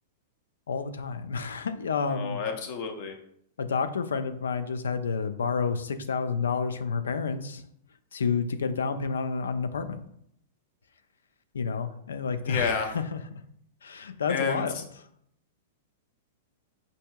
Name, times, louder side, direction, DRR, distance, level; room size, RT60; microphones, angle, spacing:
voice 1, 0.7-2.4 3.6-7.6 8.1-10.0 11.5-13.4 13.8-15.0, left 5 dB, 85° left, 10 dB, 0.3 m, -30 dB
voice 2, 2.1-3.1 12.5-12.9 14.3-14.6, left 6 dB, 55° left, 4 dB, 0.6 m, -30 dB
4.6 x 2.7 x 2.2 m, 0.70 s
hypercardioid pair, 115°, 0 cm